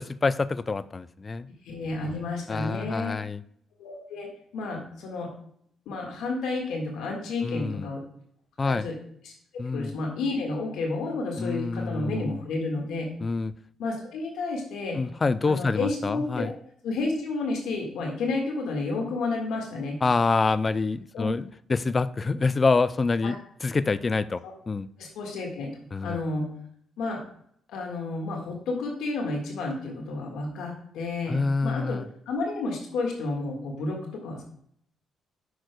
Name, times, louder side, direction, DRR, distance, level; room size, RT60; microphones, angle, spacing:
voice 1, 0.0-1.5 2.5-3.4 7.4-7.9 8.6-8.9 9.6-9.9 11.4-12.4 13.2-13.5 15.0-16.5 20.0-24.9 25.9-26.2 31.3-32.1, left 4 dB, 30° left, 16 dB, 0.4 m, -26 dB
voice 2, 1.6-3.2 3.8-5.3 5.8-8.0 8.6-8.9 9.2-9.3 9.7-13.1 13.8-15.0 15.4-16.5 16.8-20.0 21.1-21.3 23.2-23.3 25.0-25.7 26.0-26.5 27.0-27.2 27.7-32.0 32.3-34.4, left 3 dB, 85° left, 0 dB, 1.6 m, -31 dB
8.7 x 6.3 x 2.2 m, 0.66 s
cardioid pair, 90°, 0 cm